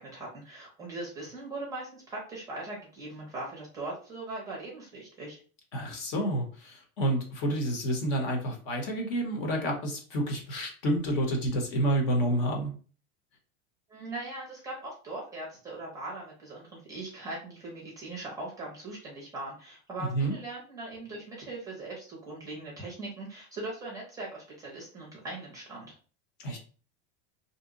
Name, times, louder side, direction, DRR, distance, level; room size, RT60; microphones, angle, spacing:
voice 1, 0.0-5.4 13.9-26.0, right 2 dB, 10° right, -3 dB, 0.6 m, -40 dB
voice 2, 5.7-12.7 20.1-20.3 26.4-26.6, right 1 dB, 50° left, 2 dB, 0.9 m, -29 dB
2.7 x 2.1 x 3.7 m, 0.39 s
supercardioid pair, 175°, 35 cm